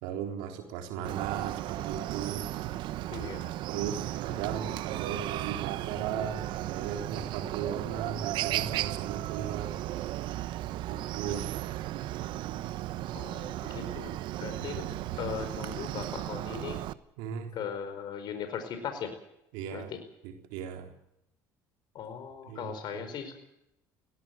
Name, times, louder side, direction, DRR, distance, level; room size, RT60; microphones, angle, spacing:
voice 1, 0.0-2.5 3.7-9.7 10.8-11.5 14.5-15.0 17.2-17.5 19.5-19.9 20.2-20.9 22.5-23.0, right 8 dB, 80° right, 3 dB, 3.8 m, -37 dB
Chicken rooster, 1.0-16.9, right 14 dB, 65° right, 1.0 m, -35 dB
voice 2, 3.1-3.5 13.1-14.1 14.4-14.8 15.2-16.8 17.5-19.1 19.7-20.0 21.9-23.4, left 7 dB, 60° left, 8 dB, 4.7 m, -38 dB
19.5 x 16.5 x 9.1 m, 0.81 s
supercardioid pair, 85°, 9 cm